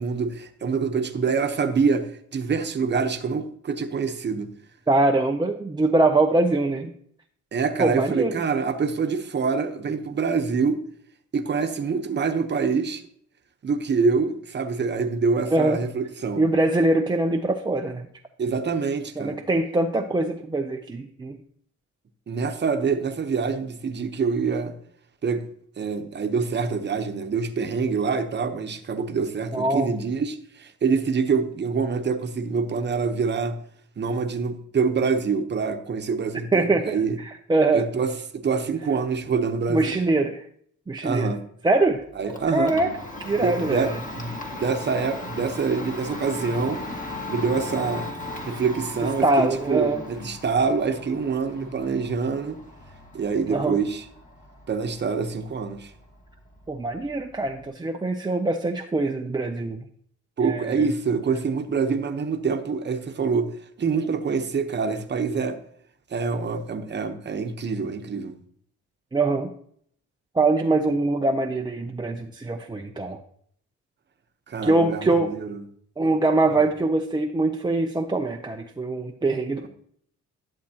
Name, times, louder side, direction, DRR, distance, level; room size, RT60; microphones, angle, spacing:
voice 1, 0.0-4.5 7.5-10.8 11.3-13.0 13.6-16.4 18.4-19.4 22.3-24.7 25.2-25.4 25.8-33.6 34.0-37.2 37.7-40.0 41.0-41.4 42.2-42.7 43.3-46.8 47.3-48.1 48.5-52.6 53.1-54.0 54.7-55.9 60.4-63.5 63.8-65.6 66.1-68.3 74.5-75.6 76.5-76.6 79.6-79.7, right 5 dB, 35° right, 7 dB, 0.9 m, -25 dB
voice 2, 4.9-6.9 7.8-8.4 15.5-15.8 16.4-18.1 19.2-21.4 29.5-30.0 36.5-37.9 39.7-40.4 40.9-41.3 41.6-42.0 42.5-42.9 43.2-44.0 49.2-50.0 53.5-53.8 56.7-59.8 60.4-60.9 69.1-69.5 70.3-73.2 74.6-75.3 76.0-79.7, right 2 dB, 15° right, 2 dB, 0.5 m, -23 dB
Domestic sounds home sounds, 41.8-57.7, left 2 dB, 25° left, 1.6 m, -38 dB
11.5 x 7.3 x 2.9 m, 0.65 s
cardioid pair, 90°, 30 cm